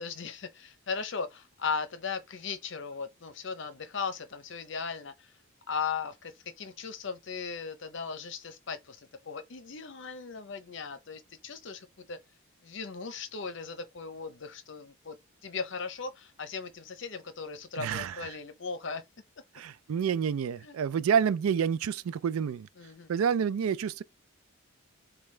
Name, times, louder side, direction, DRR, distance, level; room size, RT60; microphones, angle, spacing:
voice 1, 0.0-5.3 5.7-12.2 12.6-15.2 15.4-19.0 20.6-20.8 22.8-23.1, left 5 dB, 55° left, 0.7 m, -37 dB
voice 2, 17.8-18.3 19.6-22.7 23.1-24.0, right 7 dB, 80° right, 0.3 m, -28 dB
6.8 x 2.3 x 3.2 m
head